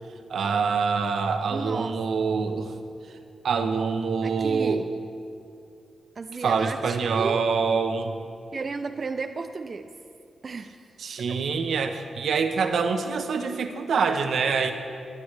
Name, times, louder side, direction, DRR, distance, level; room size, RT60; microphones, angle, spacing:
voice 1, 0.3-2.7 3.1-3.2 3.4-4.8 6.4-8.2 11.0-14.7, right 5 dB, 70° right, 7 dB, 0.9 m, -25 dB
voice 2, 1.5-1.9 2.5-2.6 4.2-4.9 6.2-7.4 8.5-9.9 10.4-10.9 11.3-11.4 14.0-14.1, right 4 dB, 40° right, 7 dB, 0.4 m, -33 dB
24.0 x 9.8 x 3.3 m, 2.5 s
wide cardioid pair, 120°, 0 cm